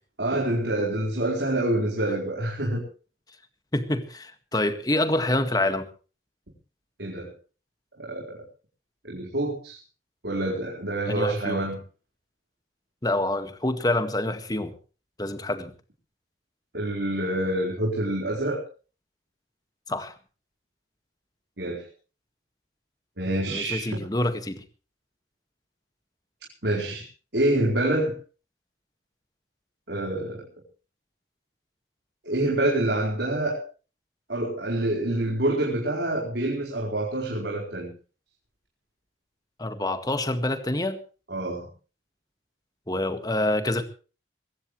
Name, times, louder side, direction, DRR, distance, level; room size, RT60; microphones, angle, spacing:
voice 1, 0.2-2.8 7.0-7.3 8.0-8.4 9.0-9.8 10.2-11.8 16.7-18.6 21.6-21.9 23.2-24.0 26.6-27.1 27.3-28.1 29.9-30.5 32.2-33.6 34.3-37.9 41.3-41.7, right 1 dB, 80° right, -1 dB, 4.5 m, -26 dB
voice 2, 3.7-5.9 11.1-11.6 13.0-14.7 15.2-15.7 19.9-20.1 23.5-24.6 39.6-41.0 42.9-43.8, left 1 dB, 20° left, 9 dB, 1.8 m, -26 dB
22.0 x 17.0 x 3.2 m, 0.36 s
head